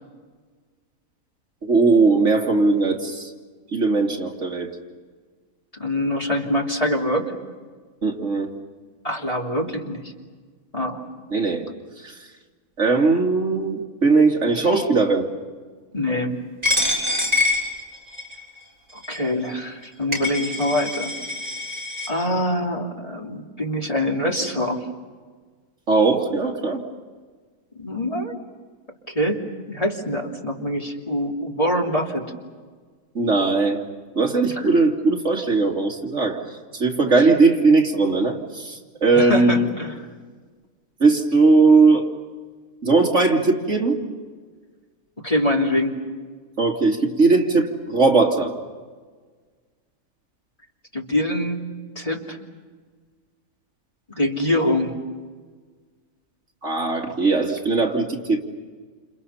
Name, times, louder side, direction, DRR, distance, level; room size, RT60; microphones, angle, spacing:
voice 1, 1.6-3.3 3.7-4.7 8.0-8.5 11.3-11.7 12.0-12.1 12.8-15.3 17.0-17.2 25.9-26.8 33.1-33.8 34.2-36.4 36.7-39.7 41.0-42.1 42.8-44.0 46.6-48.5 56.6-58.4, right 3 dB, 50° right, 1 dB, 2.9 m, -19 dB
voice 2, 5.7-7.3 9.0-10.1 10.7-11.0 15.9-16.3 19.1-21.1 22.1-24.8 27.8-28.3 29.1-32.2 34.5-34.7 39.1-40.1 45.2-45.9 50.9-51.6 51.9-52.4 54.2-54.9, left 1 dB, 25° left, 0 dB, 3.0 m, -24 dB
Coin (dropping), 16.6-18.4 19.0-19.2 19.8-19.9 20.1-22.1, left 2 dB, 25° right, 7.1 m, -24 dB
30.0 x 29.0 x 5.7 m, 1.5 s
omnidirectional pair, 1.6 m